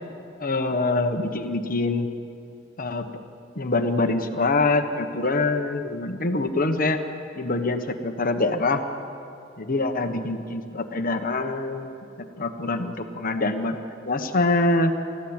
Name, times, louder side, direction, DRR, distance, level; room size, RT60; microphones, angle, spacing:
voice 1, 0.4-2.1 2.8-3.1 3.6-7.0 7.4-8.8 9.6-11.9 12.2-13.8 14.1-14.9, left 2 dB, 45° left, 6 dB, 1.2 m, -24 dB
29.0 x 14.5 x 8.9 m, 2.6 s
head